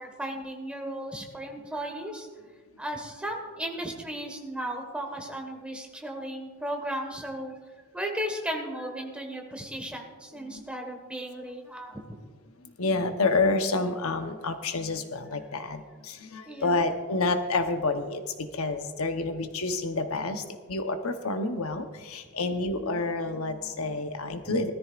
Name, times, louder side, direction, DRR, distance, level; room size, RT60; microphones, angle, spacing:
voice 1, 0.0-2.3 2.8-7.5 7.9-12.0 16.5-16.8 24.4-24.6, right 1 dB, 5° right, 2 dB, 1.5 m, -35 dB
voice 2, 12.8-20.4 20.7-24.7, left 3 dB, 80° left, 7 dB, 0.9 m, -29 dB
19.5 x 13.5 x 2.5 m, 1.4 s
head